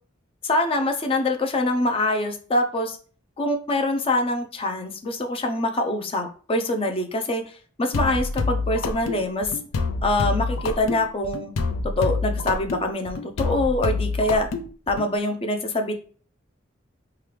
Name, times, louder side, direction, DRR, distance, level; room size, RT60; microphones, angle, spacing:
voice 1, 0.4-3.0 3.4-7.5 7.8-9.5 10.0-11.5 11.8-14.5 14.9-15.9, left 2 dB, 30° left, 5 dB, 0.5 m, -24 dB
sound 1, 7.9-15.1, left 3 dB, 85° left, 0.4 m, -27 dB
3.2 x 2.4 x 3.0 m, 0.42 s
head